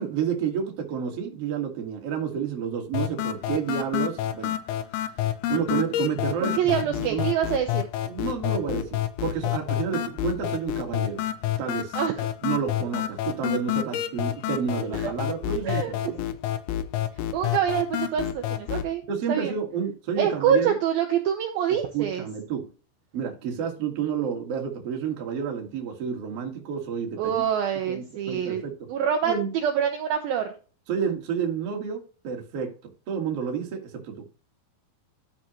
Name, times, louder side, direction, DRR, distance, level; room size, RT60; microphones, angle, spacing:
voice 1, 0.0-4.6 5.5-7.3 8.1-11.2 11.6-11.9 12.4-16.2 19.1-20.7 21.9-22.7 23.1-27.4 27.9-28.7 29.2-29.5 30.9-32.7 33.1-34.1, right 7 dB, 55° right, 2 dB, 1.8 m, -30 dB
sound 1, 2.9-18.9, left 12 dB, 90° left, 2.2 m, -29 dB
voice 2, 6.4-7.9 11.9-12.3 14.9-15.1 15.6-15.9 17.3-19.0 19.3-19.5 20.2-22.3 27.2-28.6 28.9-29.3 29.6-30.5, right 8 dB, 80° right, 4 dB, 2.1 m, -25 dB
12.0 x 5.1 x 3.0 m, 0.36 s
omnidirectional pair, 5.4 m